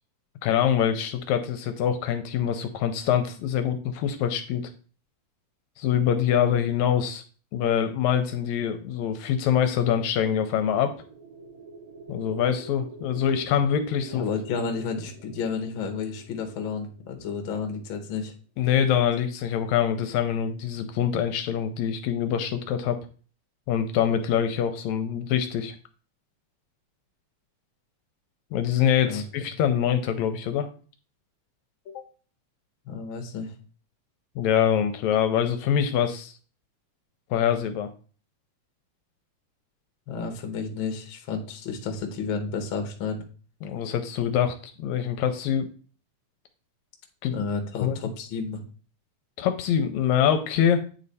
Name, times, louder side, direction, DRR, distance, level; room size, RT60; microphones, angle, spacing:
voice 1, 0.4-4.6 5.8-7.2 7.5-11.0 12.1-14.3 18.6-23.0 23.7-25.8 28.5-30.7 34.4-36.3 37.3-37.9 43.6-45.7 47.2-47.4 47.8-48.0 49.4-50.8, left 9 dB, 80° left, 8 dB, 1.9 m, -24 dB
sound 1, 9.9-18.0, right 1 dB, 75° right, 2.0 m, -46 dB
voice 2, 14.1-18.3 29.0-29.2 31.9-32.0 32.8-33.5 40.1-43.2 47.3-48.6, left 5 dB, 60° left, 5 dB, 1.5 m, -31 dB
8.9 x 3.2 x 4.1 m, 0.39 s
omnidirectional pair, 3.3 m